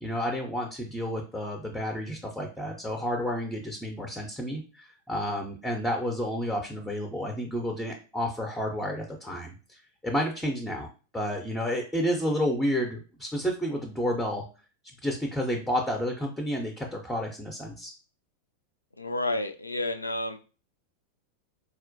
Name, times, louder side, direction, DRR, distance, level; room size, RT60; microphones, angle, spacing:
voice 1, 0.0-10.9 11.1-14.4 15.0-17.9, equal, 5° left, 1 dB, 0.5 m, -30 dB
voice 2, 19.0-20.4, left 1 dB, 80° left, 8 dB, 0.3 m, -30 dB
4.2 x 2.1 x 2.6 m, 0.35 s
figure-of-eight pair, 90°, 0 cm